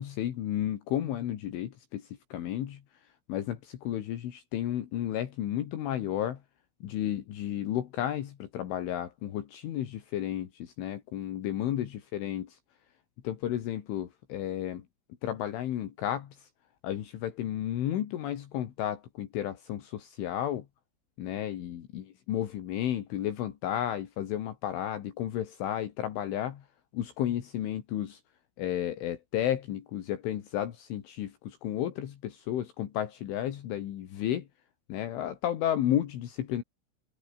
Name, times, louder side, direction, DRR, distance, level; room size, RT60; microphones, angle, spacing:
voice 1, 0.0-2.8 3.3-6.4 6.8-12.6 13.2-14.8 15.2-16.5 16.8-20.7 21.2-26.7 26.9-28.2 28.6-34.5 34.9-36.6, left 11 dB, 70° left, 4.5 m, -32 dB
omnidirectional pair, 6.0 m